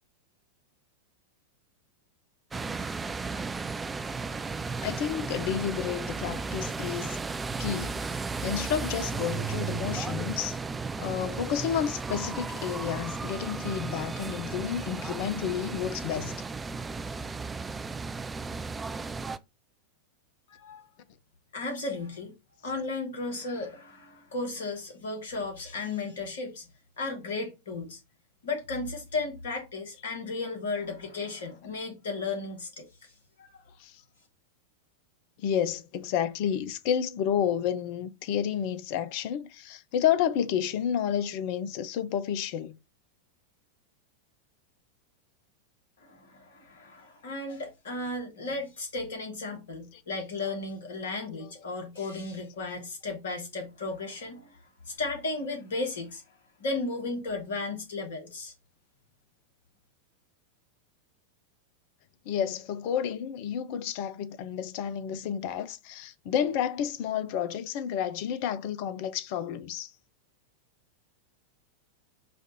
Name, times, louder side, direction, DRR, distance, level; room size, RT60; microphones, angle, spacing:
sound 1, 2.5-19.4, right 4 dB, 15° right, 0.3 m, -34 dB
voice 1, 4.8-7.2 7.6-10.6 11.0-16.4 33.8-34.0 35.4-42.8 49.9-50.0 51.4-51.5 62.3-69.9, left 9 dB, 45° left, 0.5 m, -30 dB
voice 2, 20.5-20.8 21.5-22.3 22.6-26.7 27.0-28.0 28.4-32.8 33.4-33.6 46.0-54.6 54.8-56.2 56.6-58.5, left 3 dB, 60° left, 1.5 m, -35 dB
5.0 x 2.5 x 4.0 m
figure-of-eight pair, 90°, 0 cm